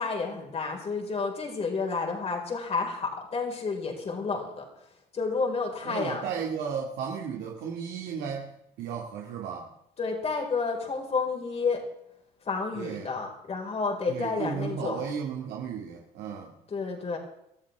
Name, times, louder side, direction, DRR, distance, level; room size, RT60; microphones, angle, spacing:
voice 1, 0.0-4.6 5.1-6.2 10.0-11.8 12.4-15.1 16.7-17.2, left 4 dB, 40° left, 1 dB, 5.1 m, -30 dB
voice 2, 5.8-9.7 12.7-13.1 14.1-16.6, right 6 dB, 80° right, -1 dB, 2.3 m, -34 dB
23.5 x 14.0 x 3.6 m, 0.79 s
cardioid pair, 110°, 17 cm